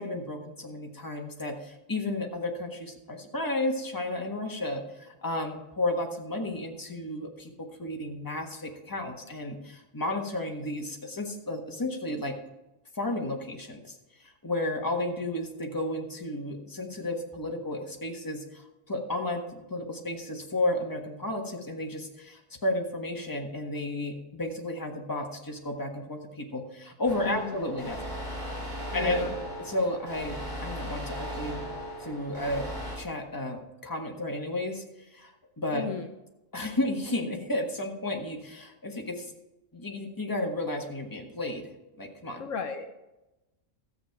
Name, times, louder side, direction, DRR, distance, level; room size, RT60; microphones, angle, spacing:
voice 1, 0.0-12.3 12.9-28.0 28.9-29.3 29.6-31.6 32.0-32.7 32.9-35.9 36.5-39.3 39.7-41.7 42.0-42.4, left 1 dB, 15° left, 1 dB, 1.4 m, -33 dB
sound 1, 27.1-33.0, equal, 25° right, 4.2 m, -37 dB
voice 2, 27.3-27.6 28.9-29.3 35.7-36.1 42.4-42.9, left 6 dB, 65° left, 7 dB, 1.1 m, -35 dB
13.5 x 8.0 x 4.7 m, 1.0 s
omnidirectional pair, 1.4 m